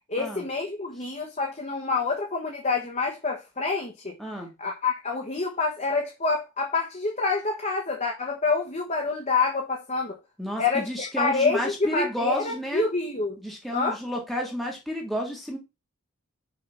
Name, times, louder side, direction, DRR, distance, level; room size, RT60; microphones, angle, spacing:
voice 1, 0.1-4.1 4.6-10.2 10.6-13.4 13.7-14.0, left 4 dB, 30° left, 1.3 m, -27 dB
voice 2, 4.2-4.5 10.4-12.8 13.4-15.6, equal, ahead, 1.6 m, -31 dB
6.7 x 3.8 x 5.7 m
head